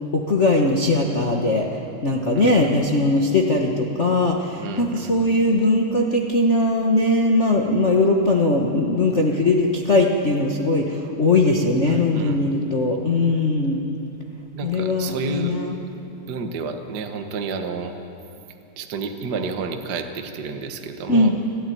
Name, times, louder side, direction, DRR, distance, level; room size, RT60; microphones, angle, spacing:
voice 1, 0.1-1.7 2.0-13.8 14.6-15.7 21.1-21.3, left 2 dB, 60° left, -1 dB, 0.7 m, -20 dB
voice 2, 2.3-2.7 4.6-5.1 11.8-12.4 14.5-15.6 16.0-17.9 18.8-21.3, right 4 dB, 50° right, 5 dB, 1.3 m, -30 dB
25.0 x 14.5 x 9.3 m, 2.8 s
omnidirectional pair, 3.6 m